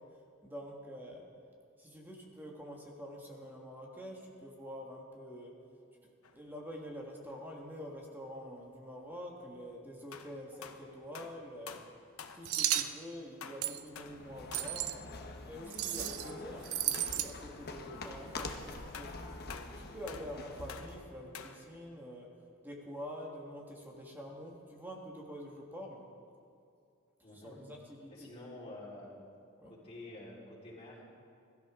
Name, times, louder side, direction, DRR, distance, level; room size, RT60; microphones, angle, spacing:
voice 1, 0.4-1.3 1.8-5.5 6.0-11.8 12.3-15.0 15.4-19.3 19.9-22.3 22.6-26.0 27.3-28.3 29.6-29.7, equal, 10° right, -1 dB, 1.7 m, -46 dB
sound 1, 6.2-6.4 7.1-7.4 9.1-9.2 10.1-13.1 13.4-14.9 15.6-15.7 16.1-16.2 16.9-17.6 18.4-21.7, left 6 dB, 80° left, 0.9 m, -49 dB
sound 2, 12.5-12.9 13.6-13.8 14.5-15.0 15.7-16.3 16.6-17.3, right 13 dB, 90° right, 0.6 m, -33 dB
sound 3, 13.9-21.1, left 2 dB, 50° left, 1.1 m, -46 dB
voice 2, 27.2-27.6 28.1-29.1 29.6-31.0, left 2 dB, 30° left, -7 dB, 4.2 m, -49 dB
21.5 x 13.0 x 3.7 m, 2.5 s
head